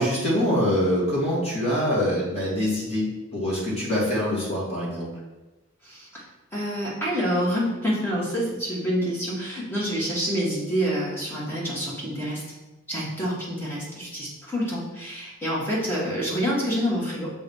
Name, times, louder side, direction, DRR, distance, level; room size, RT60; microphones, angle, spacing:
voice 1, 0.0-3.1 3.3-5.1, equal, 30° left, -6 dB, 2.5 m, -24 dB
voice 2, 5.8-6.2 6.5-12.4 12.9-17.3, equal, 10° left, -6 dB, 2.0 m, -27 dB
6.9 x 4.0 x 5.6 m, 1.1 s
head